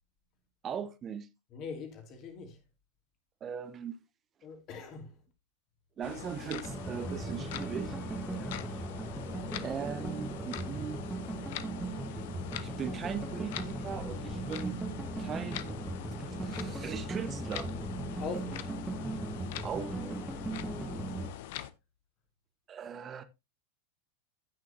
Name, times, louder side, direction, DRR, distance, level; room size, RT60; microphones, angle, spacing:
voice 1, 0.6-1.3 3.4-4.0 6.0-8.0 9.6-11.0 12.6-14.8 15.2-15.8 16.3-17.7 19.6-20.2 22.7-23.2, right 7 dB, 25° right, 0.9 m, -39 dB
voice 2, 1.5-2.6 4.4-5.2 8.3-8.7 18.1-18.7 20.7-21.1, left 5 dB, 35° left, 2.6 m, -42 dB
sound 1, 6.0-21.7, left 13 dB, 50° left, 0.8 m, -43 dB
sound 2, 6.6-21.3, right 2 dB, 10° right, 1.4 m, -38 dB
15.5 x 6.2 x 2.8 m
figure-of-eight pair, 90°, 0 cm